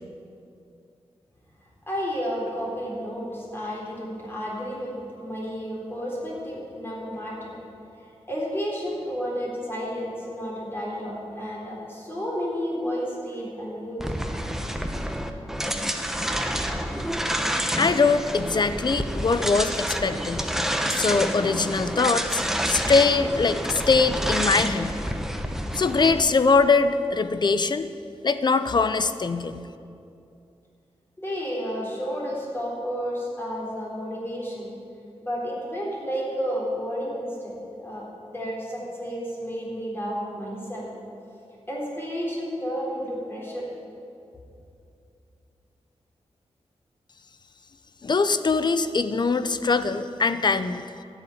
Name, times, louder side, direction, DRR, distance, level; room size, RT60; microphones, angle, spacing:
voice 1, 1.9-4.9 5.2-7.5 8.3-14.0 31.2-34.7 35.2-40.9 41.7-43.7, equal, 20° left, -4 dB, 3.9 m, -31 dB
sound 1, 14.0-26.2, equal, 5° right, 0.9 m, -28 dB
voice 2, 17.8-20.5 20.9-24.9 25.7-27.9 28.2-29.7 48.0-50.9, left 4 dB, 40° left, 12 dB, 0.6 m, -22 dB
12.5 x 7.1 x 9.6 m, 2.6 s
wide cardioid pair, 110°, 11 cm